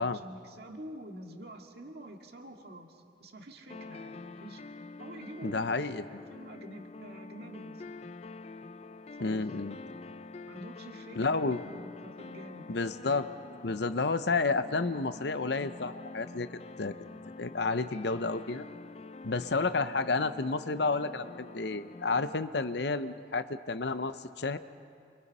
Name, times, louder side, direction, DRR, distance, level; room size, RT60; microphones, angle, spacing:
voice 1, 0.0-4.6 5.0-7.8 9.1-9.7 10.5-12.8, right 1 dB, 55° right, 2 dB, 2.1 m, -47 dB
sound 1, 3.7-22.4, left 3 dB, 35° left, 0.5 m, -46 dB
voice 2, 5.4-6.0 9.2-9.8 11.2-11.7 12.7-13.3 13.6-16.5 16.8-17.0 17.4-18.7 19.2-24.6, left 3 dB, 65° left, 12 dB, 0.8 m, -31 dB
28.0 x 24.0 x 5.5 m, 2.3 s
head